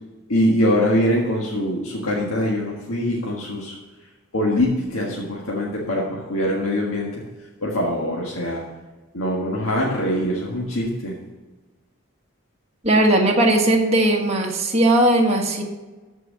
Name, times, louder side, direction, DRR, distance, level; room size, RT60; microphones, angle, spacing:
voice 1, 0.3-3.8 4.3-7.2 7.6-8.6 9.1-11.2, left 1 dB, 85° left, -3 dB, 1.7 m, -23 dB
voice 2, 12.8-15.6, right 1 dB, 30° right, 0 dB, 1.4 m, -18 dB
13.5 x 4.7 x 6.4 m, 1.2 s
head